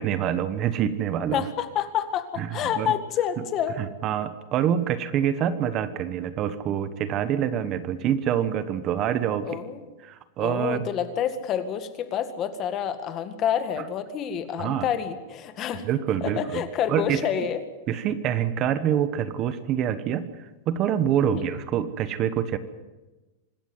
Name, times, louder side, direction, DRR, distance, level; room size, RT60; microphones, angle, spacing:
voice 1, 0.0-1.4 2.4-2.9 3.8-9.6 10.0-10.9 14.6-14.9 15.8-17.3 17.9-22.6, right 9 dB, 30° right, 13 dB, 1.2 m, -26 dB
voice 2, 1.3-3.8 9.4-9.8 10.4-15.9 16.2-17.6 21.2-21.5, left 9 dB, 30° left, 10 dB, 1.9 m, -28 dB
25.5 x 13.0 x 9.6 m, 1.2 s
supercardioid pair, 155°, 0 cm